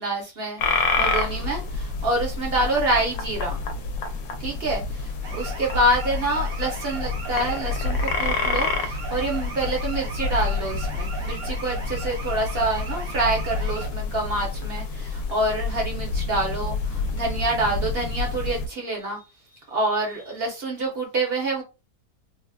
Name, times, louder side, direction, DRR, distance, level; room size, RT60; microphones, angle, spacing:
voice 1, 0.0-3.6 4.4-4.8 5.3-19.2 19.7-21.6, right 2 dB, 45° right, 1.0 m, -27 dB
sound 1, 0.6-18.7, left 4 dB, 85° left, 1.1 m, -28 dB
sound 2, 5.2-13.9, right 3 dB, 80° right, 1.2 m, -38 dB
3.4 x 2.1 x 2.3 m
omnidirectional pair, 1.6 m